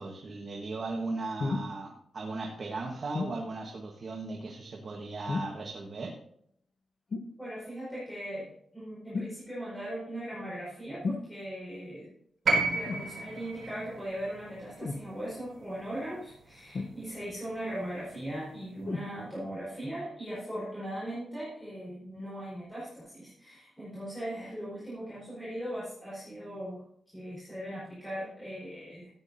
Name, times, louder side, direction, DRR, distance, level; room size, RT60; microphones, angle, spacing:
voice 1, 0.0-6.2, right 3 dB, 40° right, 0 dB, 1.4 m, -37 dB
sound 1, 1.4-1.7 3.1-3.4 5.3-5.7 7.1-7.4 9.1-9.4 11.0-11.3 12.9-13.1 14.8-15.1 16.7-17.3 18.9-19.1 19.9-20.0, left 3 dB, 45° left, 1.0 m, -33 dB
voice 2, 7.4-12.1 12.5-29.1, right 1 dB, 10° left, -8 dB, 4.4 m, -39 dB
sound 2, 12.4-16.6 17.8-17.9, right 3 dB, 55° right, 4.7 m, -32 dB
14.5 x 9.3 x 2.7 m, 0.69 s
wide cardioid pair, 170°, 0 cm